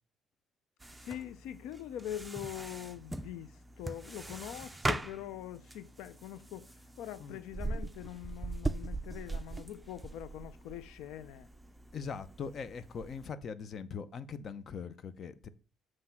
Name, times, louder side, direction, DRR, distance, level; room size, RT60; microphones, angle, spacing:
sound 1, 0.8-13.3, right 2 dB, 10° right, 0.5 m, -41 dB
voice 1, 1.0-11.5, left 11 dB, 85° left, 0.4 m, -43 dB
voice 2, 11.9-15.5, left 6 dB, 50° left, 0.7 m, -41 dB
7.6 x 3.2 x 5.9 m
cardioid pair, 90°, 0 cm